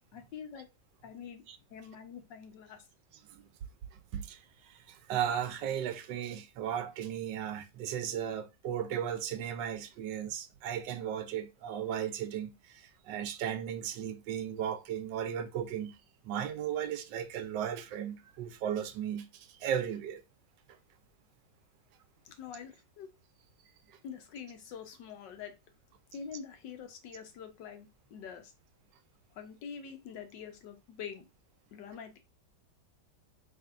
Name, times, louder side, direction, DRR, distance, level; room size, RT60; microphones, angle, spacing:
voice 1, 0.1-0.7 1.0-1.4 1.7-2.8 22.2-23.1 24.0-25.5 26.1-28.5 29.3-31.3 31.7-32.2, left 7 dB, 85° left, 1.5 m, -45 dB
voice 2, 4.9-12.5 13.1-15.9 16.2-19.3 19.6-20.2, right 9 dB, 85° right, 1.3 m, -35 dB
4.3 x 3.5 x 2.4 m
omnidirectional pair, 1.9 m